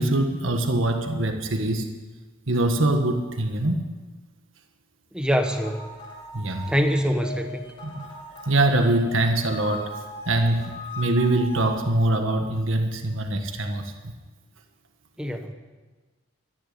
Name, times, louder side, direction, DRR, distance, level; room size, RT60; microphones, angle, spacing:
voice 1, 0.0-1.9 2.5-3.8 6.3-6.7 7.8-8.1 8.5-9.9 10.3-10.7 11.0-13.9, right 1 dB, 80° right, 4 dB, 1.5 m, -23 dB
voice 2, 5.1-5.9 6.7-7.6 15.2-15.5, equal, 5° right, 5 dB, 1.2 m, -24 dB
sound 1, 5.4-11.9, left 1 dB, 25° left, 3.0 m, -40 dB
14.0 x 10.5 x 9.6 m, 1.3 s
head